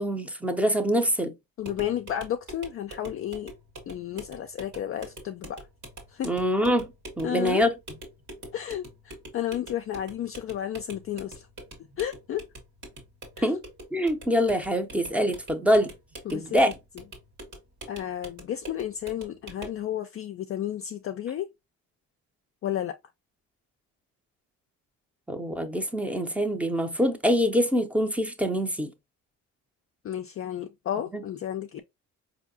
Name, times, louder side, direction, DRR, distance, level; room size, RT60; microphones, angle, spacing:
voice 1, 0.0-1.3 6.2-6.9 7.2-7.7 13.4-13.6 13.9-15.9 16.3-16.7 25.3-28.9, equal, 5° right, 0.6 m, -24 dB
voice 2, 1.6-3.5 3.9-5.6 6.1-6.3 7.2-7.7 8.5-11.5 12.0-12.5 13.4-13.5 16.3-16.6 17.9-21.5 22.6-23.0 30.0-31.8, left 11 dB, 40° left, 0.4 m, -32 dB
sound 1, 1.6-19.8, right 1 dB, 55° right, 1.6 m, -45 dB
4.3 x 2.8 x 2.6 m
supercardioid pair, 75°, 35 cm